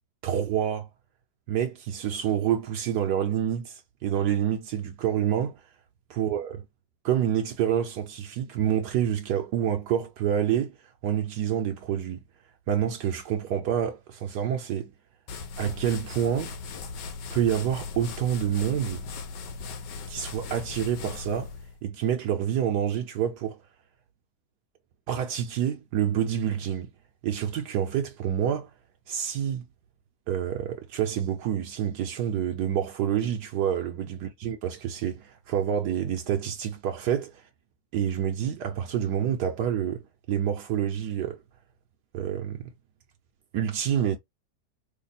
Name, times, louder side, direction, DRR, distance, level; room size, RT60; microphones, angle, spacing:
voice 1, 0.2-0.9 1.5-5.6 6.1-6.6 7.0-10.7 11.0-12.2 12.7-14.9 15.6-16.5 17.3-19.0 20.1-21.5 21.8-23.6 25.1-26.9 27.2-28.7 29.1-29.6 30.3-37.3 37.9-40.0 40.3-41.4 42.1-42.7 43.5-44.2, right 9 dB, 70° right, 1.2 m, -27 dB
sound 1, 15.3-21.8, left 4 dB, 90° left, 1.4 m, -38 dB
3.3 x 2.3 x 4.0 m
omnidirectional pair, 1.9 m